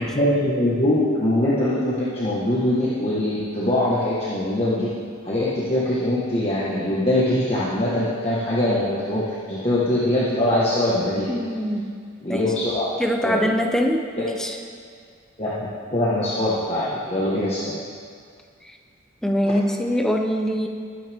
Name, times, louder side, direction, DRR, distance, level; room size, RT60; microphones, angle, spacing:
voice 1, 0.1-4.9 5.2-11.3 12.2-12.9 13.2-13.4 14.2-14.3 15.4-17.8, left 1 dB, 30° left, -9 dB, 1.7 m, -22 dB
voice 2, 11.3-11.9 12.3-12.5 13.0-14.6 19.2-20.7, equal, ahead, 3 dB, 0.8 m, -23 dB
21.0 x 9.2 x 3.7 m, 2.1 s
head